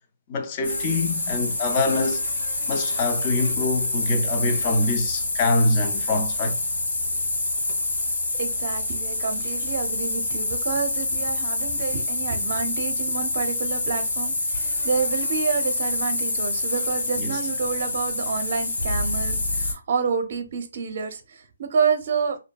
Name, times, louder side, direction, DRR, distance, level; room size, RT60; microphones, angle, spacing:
voice 1, 0.3-2.2 2.7-6.6 17.2-17.4, left 2 dB, 25° left, 0.4 m, -24 dB
sound 1, 0.6-19.7, left 2 dB, 80° left, 1.4 m, -27 dB
voice 2, 8.4-22.4, right 5 dB, 45° right, 0.5 m, -28 dB
2.6 x 2.5 x 2.2 m
hypercardioid pair, 165°, 0 cm